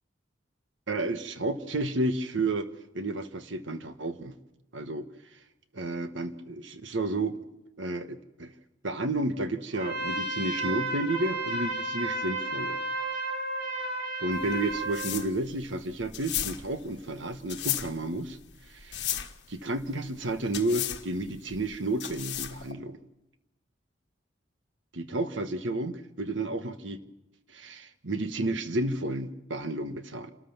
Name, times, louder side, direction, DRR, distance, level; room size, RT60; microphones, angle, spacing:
voice 1, 0.9-2.7 2.9-4.3 4.7-5.0 5.7-7.4 7.8-8.5 8.8-12.8 14.2-18.4 18.7-19.1 19.5-23.0 24.9-27.0 27.5-30.3, right 2 dB, 75° right, 9 dB, 1.2 m, -31 dB
Trumpet, 9.7-15.1, right 2 dB, 50° right, 7.6 m, -32 dB
sound 1, 14.3-22.7, left 11 dB, 60° left, 1.5 m, -35 dB
28.5 x 13.5 x 7.1 m, 0.94 s
head